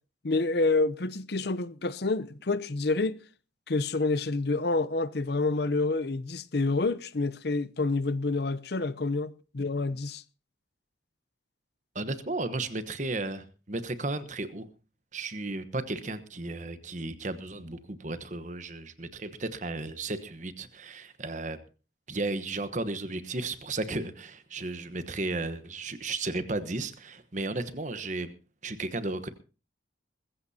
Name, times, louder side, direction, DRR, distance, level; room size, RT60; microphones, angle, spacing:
voice 1, 0.2-3.2 3.7-10.2, left 3 dB, 55° left, 0.7 m, -28 dB
voice 2, 11.9-14.7 15.1-21.6 22.1-28.3 28.6-29.3, right 2 dB, 40° right, 1.1 m, -34 dB
21.0 x 15.0 x 2.8 m
head